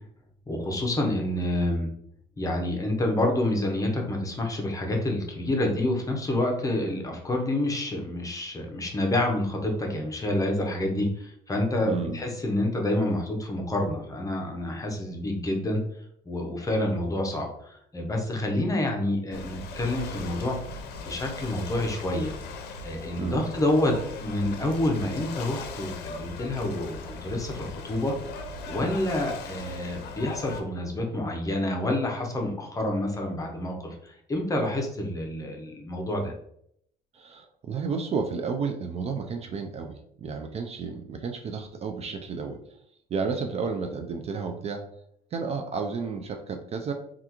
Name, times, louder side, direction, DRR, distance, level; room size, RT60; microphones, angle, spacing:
voice 1, 0.5-1.9 2.4-15.8 16.3-20.6 21.0-22.3 22.8-23.9 24.2-28.1 28.7-36.3, left 1 dB, 20° left, 1 dB, 0.7 m, -28 dB
voice 2, 11.8-12.2 23.2-23.5 37.1-42.6 43.1-44.8 45.3-46.9, right 5 dB, 40° right, 5 dB, 0.4 m, -32 dB
Ocean / Boat Water vehicle, 19.3-30.6, left 4 dB, 70° left, 0.6 m, -39 dB
3.4 x 2.4 x 2.9 m, 0.70 s
cardioid pair, 110°, 17 cm